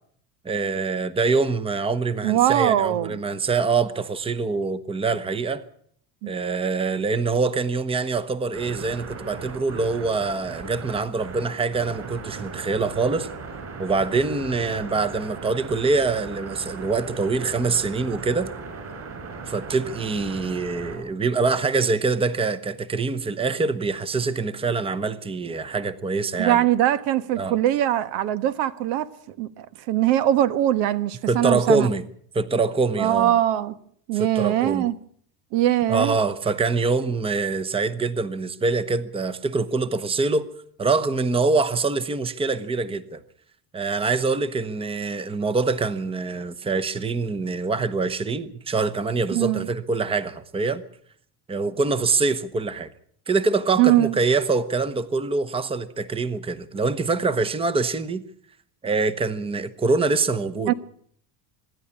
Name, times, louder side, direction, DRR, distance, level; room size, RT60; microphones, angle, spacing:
voice 1, 0.4-5.6 6.3-13.3 13.8-18.5 19.5-26.6 27.4-27.5 31.3-32.0 32.3-33.3 34.1-34.9 35.9-40.5 40.8-43.2 43.7-50.8 51.5-52.9 53.3-58.2 58.8-60.7, right 4 dB, 10° right, 0.9 m, -24 dB
voice 2, 2.2-3.2 6.2-6.3 26.4-29.1 29.4-31.9 33.0-33.7 34.1-34.9 35.5-36.2 49.3-49.7 53.8-54.1 60.7-60.8, right 12 dB, 75° right, 1.4 m, -21 dB
sound 1, 8.5-21.0, right 4 dB, 35° right, 7.7 m, -37 dB
25.0 x 11.0 x 9.9 m
cardioid pair, 135°, 46 cm